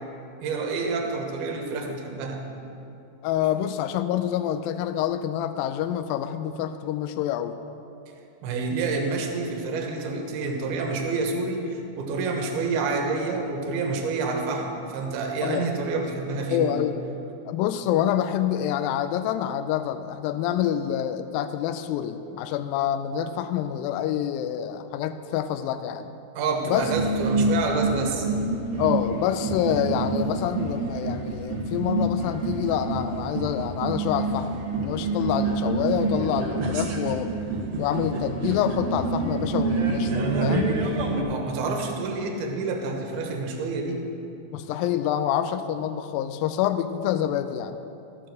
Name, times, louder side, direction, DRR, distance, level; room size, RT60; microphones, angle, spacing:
voice 1, 0.4-2.4 8.4-16.8 26.4-28.3 41.3-44.0, right 3 dB, 80° right, 2 dB, 3.1 m, -28 dB
voice 2, 3.2-7.6 15.4-15.7 16.5-17.0 17.5-26.1 26.6-26.9 28.8-34.5 34.8-37.3 37.8-40.8 44.5-47.8, left 10 dB, 85° left, 9 dB, 2.1 m, -27 dB
sound 1, 26.7-41.2, right 3 dB, 60° right, 1.8 m, -27 dB
13.5 x 7.6 x 6.4 m, 2.8 s
omnidirectional pair, 4.5 m